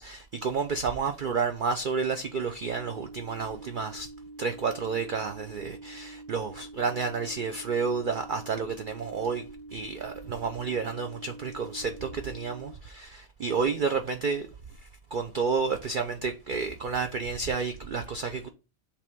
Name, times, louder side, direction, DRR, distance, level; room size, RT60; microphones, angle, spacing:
voice 1, 0.0-4.1 4.4-9.4 9.7-14.5 15.1-18.5, right 5 dB, 75° right, 0.4 m, -30 dB
sound 1, 2.7-12.7, right 2 dB, 50° right, 1.5 m, -46 dB
5.5 x 3.4 x 5.2 m
omnidirectional pair, 1.5 m